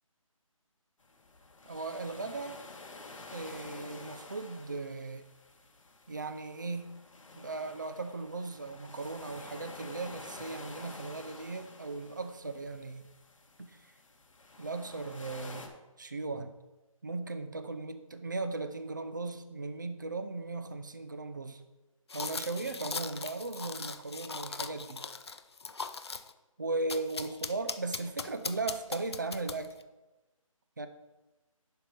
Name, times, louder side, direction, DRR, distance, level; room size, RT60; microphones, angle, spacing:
sound 1, 1.0-15.7, left 2 dB, 65° left, 1.4 m, -50 dB
voice 1, 1.7-2.6 3.3-5.3 6.1-6.9 7.4-13.0 13.6-13.9 14.6-16.5 17.0-21.6 22.1-25.1 26.6-29.7 30.8-30.9, right 3 dB, 35° right, 9 dB, 0.5 m, -37 dB
sound 2, 22.1-26.3 26.9-29.8, left 4 dB, 50° left, 0.5 m, -39 dB
11.0 x 4.6 x 4.8 m, 1.1 s
hypercardioid pair, 180°, 18 cm